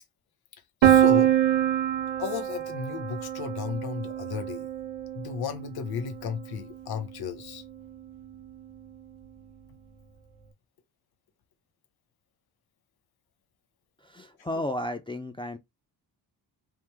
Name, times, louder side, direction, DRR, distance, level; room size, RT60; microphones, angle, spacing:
voice 1, 0.8-1.3 2.2-4.7 5.1-7.6, left 7 dB, 55° left, 0.9 m, -34 dB
Piano, 0.8-6.6, right 11 dB, 85° right, 0.9 m, -25 dB
voice 2, 14.0-15.6, left 1 dB, 10° left, 0.4 m, -33 dB
3.7 x 2.6 x 4.5 m
cardioid pair, 120°, 45 cm